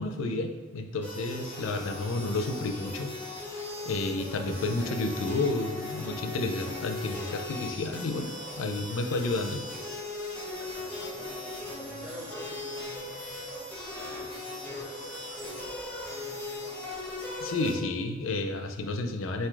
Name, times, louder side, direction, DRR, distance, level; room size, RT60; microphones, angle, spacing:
voice 1, 0.0-9.6 17.4-19.5, left 2 dB, 80° left, 6 dB, 0.4 m, -31 dB
sound 1, 1.0-17.7, left 2 dB, 5° left, 0.8 m, -38 dB
voice 2, 10.5-11.7 12.0-12.8 13.9-14.3 14.6-16.9, equal, 70° right, -6 dB, 1.4 m, -48 dB
3.7 x 2.6 x 4.6 m, 1.2 s
head